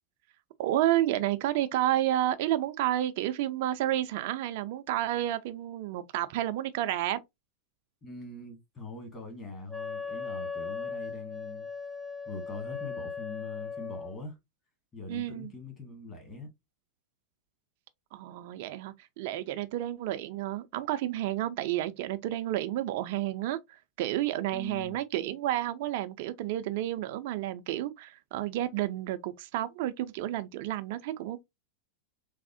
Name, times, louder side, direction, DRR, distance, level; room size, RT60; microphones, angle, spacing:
voice 1, 0.6-7.2 15.1-15.5 18.1-23.6 24.0-31.4, right 13 dB, 65° right, 0.4 m, -30 dB
voice 2, 8.0-11.7 12.2-14.4 14.9-16.5 24.5-25.0, left 3 dB, 25° left, 1.5 m, -43 dB
Wind instrument woodwind instrument, 9.7-14.2, left 5 dB, 5° left, 0.6 m, -38 dB
3.4 x 2.0 x 2.5 m
hypercardioid pair, 110°, 0 cm